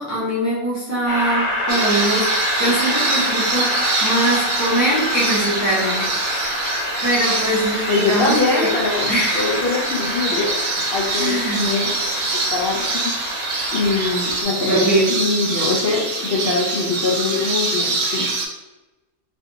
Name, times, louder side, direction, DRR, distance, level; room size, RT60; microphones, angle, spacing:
voice 1, 0.0-2.3 2.6-3.7 4.0-6.7 7.0-8.7 9.1-9.5 11.1-11.7 13.6-13.7 14.6-15.1, right 1 dB, 15° right, -8 dB, 0.7 m, -22 dB
Train, 1.1-14.4, left 1 dB, 80° left, 1.2 m, -26 dB
sound 1, 1.7-18.5, right 3 dB, 80° right, 1.1 m, -25 dB
voice 2, 7.9-13.1 13.7-18.3, left 4 dB, 60° left, -5 dB, 0.6 m, -23 dB
3.3 x 2.6 x 2.7 m, 1.0 s
omnidirectional pair, 1.5 m